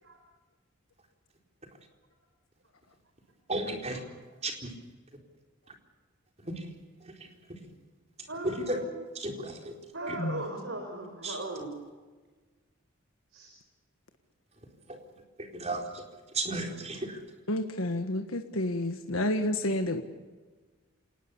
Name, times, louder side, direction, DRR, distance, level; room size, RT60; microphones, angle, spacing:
voice 1, 3.5-4.0 4.4-4.7 6.4-6.7 7.0-7.6 8.2-8.8 9.1-9.7 10.1-10.2 11.2-11.4 14.9-15.0 15.4-16.0 16.3-17.2, right 2 dB, 30° right, 2 dB, 4.3 m, -34 dB
voice 2, 8.3-8.9 9.9-11.7 13.3-13.5, right 2 dB, 65° right, 3 dB, 4.8 m, -38 dB
voice 3, 17.5-20.0, left 1 dB, 85° left, 6 dB, 1.5 m, -30 dB
27.0 x 19.5 x 7.0 m, 1.3 s
head